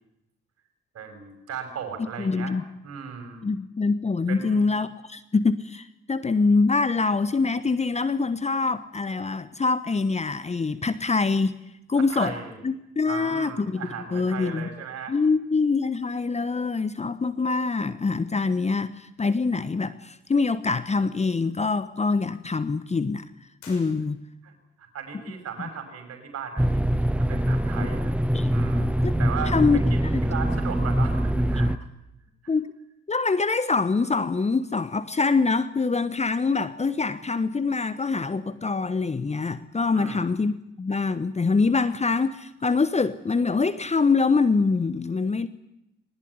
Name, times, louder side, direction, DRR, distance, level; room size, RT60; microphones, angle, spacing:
voice 1, 0.9-2.5 2.8-3.5 4.3-4.7 12.0-12.6 13.1-15.1 24.4-24.5 24.8-26.9 27.1-28.1 28.5-29.6 29.9-31.7 32.4-32.5 39.9-40.4, right 6 dB, 50° right, 5 dB, 6.5 m, -37 dB
voice 2, 2.2-2.6 3.4-11.5 11.9-12.3 12.6-13.8 14.1-14.7 15.1-23.3 23.7-24.2 28.3-28.5 29.0-29.1 29.5-29.8 32.5-32.7 33.1-45.5, left 4 dB, 20° left, 13 dB, 1.2 m, -24 dB
sound 1, 23.6-24.6, left 4 dB, 70° left, 6.6 m, -50 dB
sound 2, 26.6-31.8, equal, 5° right, 1.0 m, -23 dB
21.0 x 20.0 x 10.0 m, 0.87 s
figure-of-eight pair, 40°, 31 cm